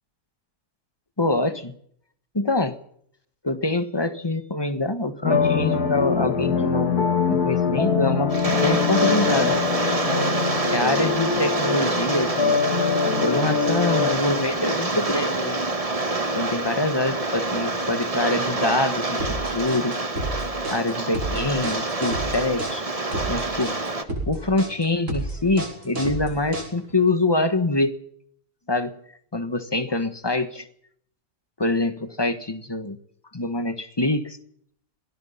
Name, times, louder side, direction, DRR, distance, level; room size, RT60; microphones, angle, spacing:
voice 1, 1.2-1.8 2.3-2.8 3.4-9.6 10.6-12.6 13.2-15.6 16.3-19.2 19.5-19.9 20.7-22.8 23.3-23.8 24.3-27.9 28.7-29.0 29.3-30.7 31.6-33.0 33.3-34.4, left 2 dB, 15° left, 11 dB, 1.5 m, -25 dB
sound 1, 5.2-14.2, left 6 dB, 90° left, 2.5 m, -23 dB
Rain, 8.3-24.0, right 2 dB, 25° right, 1.7 m, -26 dB
sound 2, 19.2-27.0, right 1 dB, 55° right, 5.9 m, -31 dB
26.5 x 18.5 x 5.7 m, 0.67 s
omnidirectional pair, 1.6 m